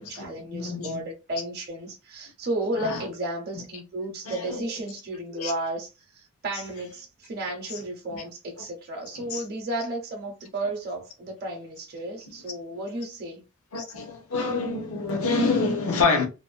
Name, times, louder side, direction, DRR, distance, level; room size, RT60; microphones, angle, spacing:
voice 1, 0.0-13.4, right 1 dB, 45° right, 0.6 m, -33 dB
voice 2, 0.5-1.0 2.7-3.0 4.2-4.7 5.3-5.5 7.7-7.8 8.1-8.2 9.1-9.4 13.7-16.3, left 3 dB, 65° left, 0.7 m, -27 dB
2.5 x 2.1 x 2.4 m
head